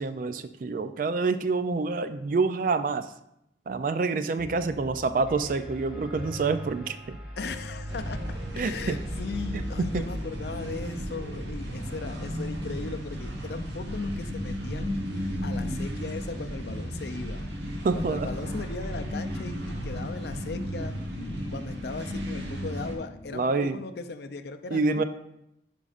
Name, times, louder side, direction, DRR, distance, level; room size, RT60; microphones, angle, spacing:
voice 1, 0.0-3.1 3.7-7.2 8.5-9.0 9.5-9.6 9.9-10.0 17.8-18.3 23.3-23.8 24.7-25.0, right 4 dB, 45° right, 11 dB, 0.3 m, -27 dB
Piano, 4.4-11.4, equal, 5° right, 0.8 m, -39 dB
voice 2, 7.4-8.2 8.6-17.5 17.9-21.0 21.5-25.0, left 3 dB, 60° left, 9 dB, 0.5 m, -38 dB
sound 1, 7.9-23.0, equal, 80° right, 1.2 m, -34 dB
sound 2, 11.4-23.4, equal, 40° left, 1.0 m, -50 dB
9.8 x 5.3 x 2.5 m, 0.81 s
head